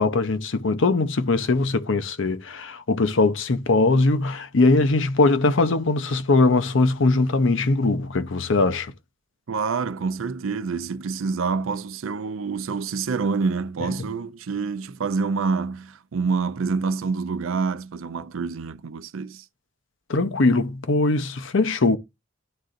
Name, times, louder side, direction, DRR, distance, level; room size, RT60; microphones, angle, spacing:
voice 1, 0.0-8.9 20.1-22.0, left 3 dB, 70° left, 0.7 m, -21 dB
voice 2, 9.5-19.4, right 4 dB, 80° right, 0.5 m, -27 dB
11.5 x 3.8 x 2.5 m
head